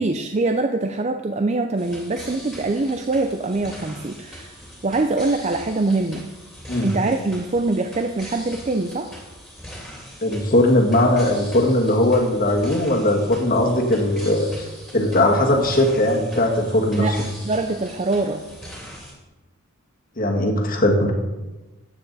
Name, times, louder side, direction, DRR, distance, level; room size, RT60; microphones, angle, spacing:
voice 1, 0.0-6.3 6.8-9.1 17.0-18.4, right 2 dB, 30° right, 6 dB, 0.5 m, -24 dB
sound 1, 1.8-19.1, equal, ahead, 2.9 m, -41 dB
voice 2, 10.2-14.7 14.9-17.1 20.2-21.1, left 1 dB, 40° left, 1 dB, 1.7 m, -19 dB
14.0 x 9.1 x 4.1 m, 1.2 s
head